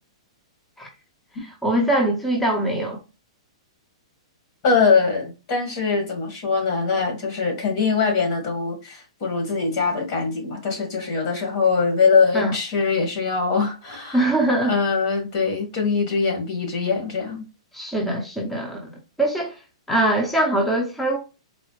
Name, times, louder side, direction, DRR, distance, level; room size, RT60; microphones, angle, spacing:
voice 1, 1.4-3.0 12.3-12.5 14.1-14.8 17.7-18.9 19.2-19.6 19.9-21.2, right 1 dB, 5° left, 0.7 m, -22 dB
voice 2, 4.6-14.4 14.6-17.5, left 5 dB, 50° left, 1.7 m, -22 dB
4.0 x 2.0 x 3.2 m
hypercardioid pair, 125°, 3 cm